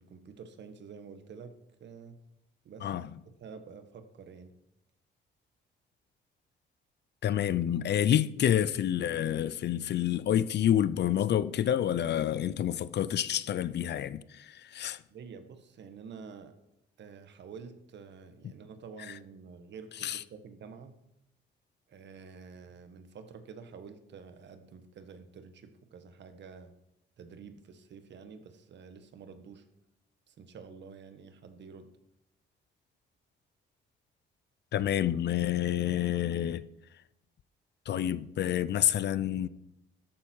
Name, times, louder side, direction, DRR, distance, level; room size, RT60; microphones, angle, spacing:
voice 1, 0.0-2.2 2.6-3.0 3.4-4.5 15.1-16.6 17.0-21.0 21.9-26.7 27.2-29.6 30.3-31.9, right 5 dB, 65° right, 1.7 m, -49 dB
voice 2, 7.2-15.0 20.0-20.2 34.7-36.6 37.9-39.5, left 10 dB, 60° left, 0.6 m, -28 dB
13.5 x 11.5 x 4.7 m
cardioid pair, 90°, 20 cm